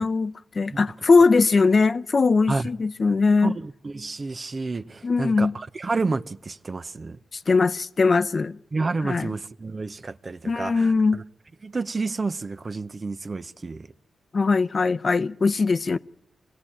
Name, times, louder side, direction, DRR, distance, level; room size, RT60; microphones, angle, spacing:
voice 1, 0.0-3.5 5.0-5.6 7.3-8.6 9.0-9.3 10.5-11.2 14.3-16.0, left 4 dB, 50° left, 0.7 m, -20 dB
voice 2, 3.4-7.2 8.7-11.2 11.6-13.9, right 3 dB, 45° right, 0.8 m, -30 dB
24.5 x 16.0 x 8.7 m
supercardioid pair, 45°, 0 cm